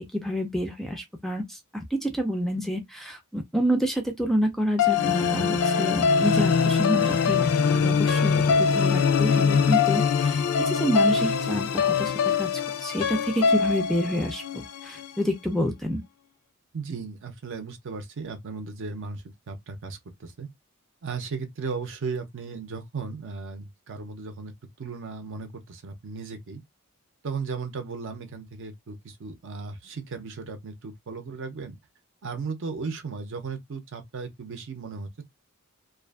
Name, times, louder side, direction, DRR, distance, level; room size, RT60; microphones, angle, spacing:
voice 1, 0.0-12.5 12.8-16.0, equal, ahead, 0.3 m, -28 dB
sound 1, 4.8-15.1, left 6 dB, 90° left, 0.4 m, -23 dB
voice 2, 16.7-20.5 21.0-24.5 24.8-26.6 27.2-31.7 32.2-35.3, right 4 dB, 60° right, 0.6 m, -36 dB
2.5 x 2.4 x 2.3 m
head